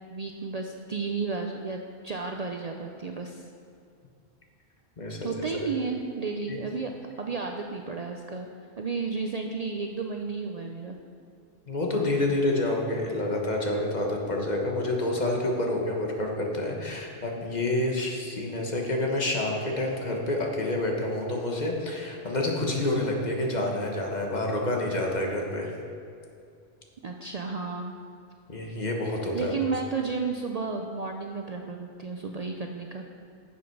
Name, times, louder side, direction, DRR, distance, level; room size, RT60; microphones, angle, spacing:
voice 1, 0.1-3.5 5.2-8.5 8.8-11.0 27.0-27.9 29.3-33.0, right 4 dB, 50° right, 3 dB, 0.6 m, -32 dB
voice 2, 5.0-5.3 5.6-5.7 6.5-6.6 11.7-25.7 28.5-29.5, left 1 dB, 45° left, 0 dB, 1.4 m, -28 dB
11.0 x 7.2 x 4.6 m, 2.4 s
omnidirectional pair, 1.0 m